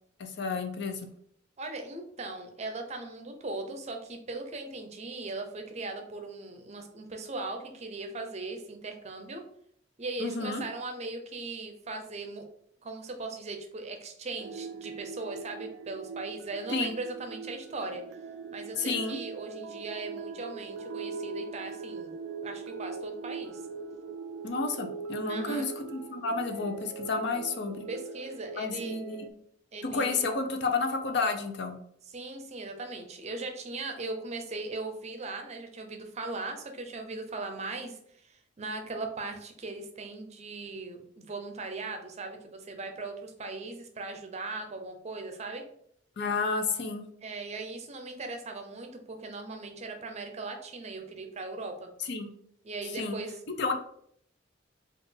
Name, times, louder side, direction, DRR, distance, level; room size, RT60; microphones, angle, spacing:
voice 1, 0.2-1.1 10.2-10.6 16.7-16.9 18.8-19.2 24.4-27.9 28.6-29.3 29.8-31.8 46.2-47.0 52.0-52.3 53.0-53.2 53.6-53.7, left 4 dB, 65° left, 5 dB, 0.6 m, -31 dB
voice 2, 1.6-9.4 10.0-12.4 12.8-18.0 18.5-22.1 22.4-23.6 25.3-25.7 27.9-29.0 29.7-30.2 32.1-45.6 47.2-51.9 52.6-53.7, right 3 dB, 35° right, 5 dB, 0.5 m, -39 dB
sound 1, 14.4-29.3, right 4 dB, 85° right, 0.3 m, -41 dB
4.3 x 2.4 x 3.2 m, 0.68 s
head